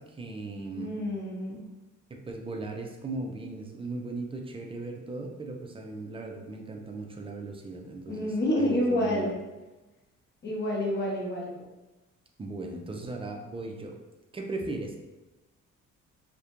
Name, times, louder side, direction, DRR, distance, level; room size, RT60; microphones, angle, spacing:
voice 1, 0.0-1.0 2.1-9.3 12.4-14.0 14.3-15.0, right 2 dB, 20° right, 2 dB, 0.3 m, -37 dB
voice 2, 0.7-1.6 8.1-9.3 10.4-11.5, left 1 dB, 35° left, -2 dB, 0.8 m, -28 dB
2.4 x 2.1 x 2.9 m, 1.1 s
cardioid pair, 90°, 30 cm